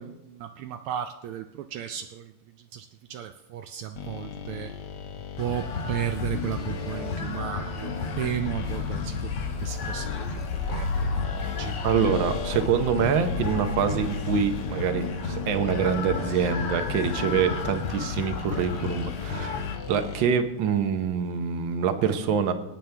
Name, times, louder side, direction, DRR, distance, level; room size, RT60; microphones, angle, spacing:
voice 1, 0.0-2.3 2.7-4.7 5.4-9.3 9.6-10.1 10.7-11.1 11.6-11.8, right 11 dB, 80° right, 7 dB, 1.5 m, -34 dB
sound 1, 3.9-20.3, left 7 dB, 60° left, 1.4 m, -37 dB
sound 2, 5.4-19.8, left 4 dB, 90° left, 2.2 m, -32 dB
voice 2, 11.8-19.6 19.9-22.5, right 7 dB, 65° right, 8 dB, 1.6 m, -25 dB
23.5 x 9.3 x 3.4 m, 0.94 s
omnidirectional pair, 2.4 m